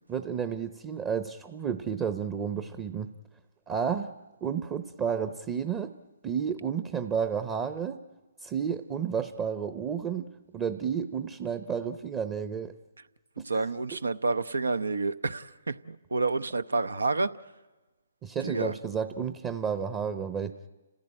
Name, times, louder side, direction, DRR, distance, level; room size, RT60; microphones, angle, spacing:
voice 1, 0.1-3.1 3.7-4.1 4.4-5.9 6.2-8.0 8.4-12.7 18.2-20.5, right 7 dB, 20° right, 0.7 m, -31 dB
voice 2, 13.5-17.3 18.4-18.8, right 3 dB, 90° right, 0.7 m, -29 dB
29.5 x 15.5 x 8.7 m
hypercardioid pair, 140°, 0 cm